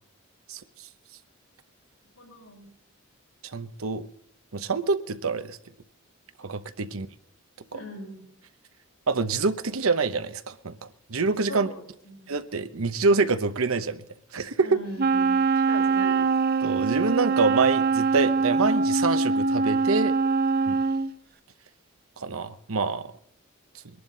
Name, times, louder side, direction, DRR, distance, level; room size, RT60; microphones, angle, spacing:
voice 1, 2.2-2.7 7.7-8.3 11.5-12.4 14.6-16.3 20.6-20.8, left 1 dB, 85° left, 0 dB, 5.9 m, -40 dB
voice 2, 3.5-4.1 4.5-5.6 6.4-7.1 9.1-11.7 12.3-14.0 14.3-14.7 16.6-20.1 20.7-20.8 22.2-23.1, right 4 dB, 85° right, 10 dB, 0.9 m, -26 dB
Wind instrument woodwind instrument, 15.0-21.1, right 4 dB, 45° right, 0.6 m, -23 dB
22.0 x 11.5 x 4.0 m, 0.68 s
head